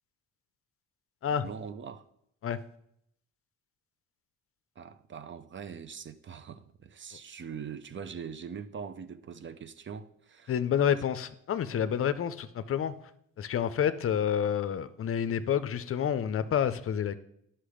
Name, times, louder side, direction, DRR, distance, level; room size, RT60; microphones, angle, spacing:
voice 1, 1.4-2.1 4.8-10.5 10.9-11.0, right 7 dB, 40° right, 0.6 m, -42 dB
voice 2, 10.5-13.0 13.4-17.1, left 8 dB, 45° left, 0.6 m, -29 dB
10.0 x 5.7 x 5.0 m
cardioid pair, 90°, 30 cm